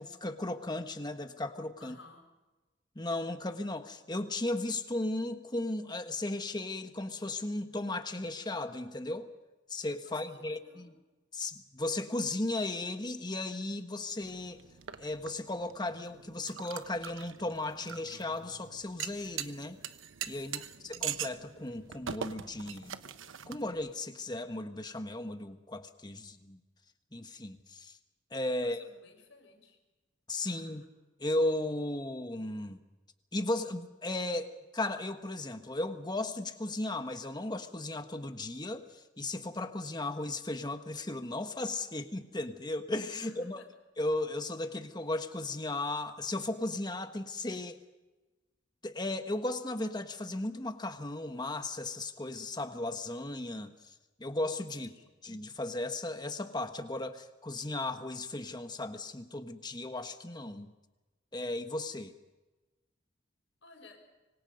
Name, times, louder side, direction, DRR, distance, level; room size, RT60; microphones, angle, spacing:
voice 1, 0.0-1.9 2.9-9.3 9.7-10.9 11.3-14.6 15.0-19.8 20.3-23.0 23.5-26.6 27.1-28.0 28.3-28.8 30.3-30.8 31.2-32.8 33.3-43.6 44.0-47.8 48.8-53.9 54.2-54.9 55.2-60.7 61.3-62.1, left 2 dB, 20° left, 8 dB, 1.4 m, -36 dB
voice 2, 1.8-2.3 10.0-11.0 20.3-20.9 28.6-29.8 30.4-30.9 43.2-43.7 54.8-55.1 63.6-64.0, left 3 dB, 70° left, 4 dB, 5.5 m, -57 dB
sound 1, 14.2-23.9, right 8 dB, 80° right, 1.1 m, -43 dB
26.0 x 24.5 x 5.3 m, 1.1 s
head